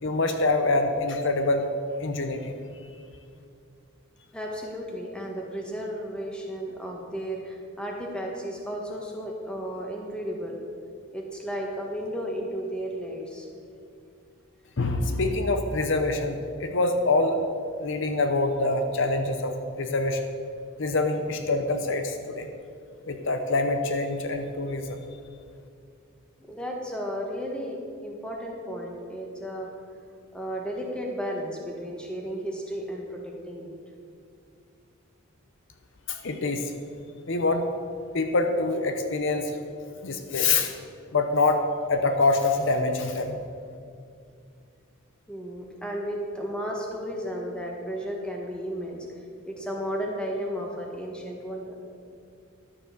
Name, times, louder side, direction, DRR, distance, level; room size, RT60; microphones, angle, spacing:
voice 1, 0.0-1.7 2.0-2.5 14.8-17.4 17.8-19.5 19.8-20.2 20.8-22.5 23.1-25.0 36.1-36.7 37.3-37.6 38.1-39.5 40.0-40.7 41.1-41.6 41.9-43.4, left 3 dB, 60° left, 6 dB, 0.8 m, -25 dB
voice 2, 4.3-10.6 11.1-13.5 26.4-29.7 30.3-33.7 45.3-49.1 49.5-51.8, equal, 5° left, -1 dB, 1.5 m, -34 dB
12.0 x 7.1 x 6.8 m, 2.4 s
head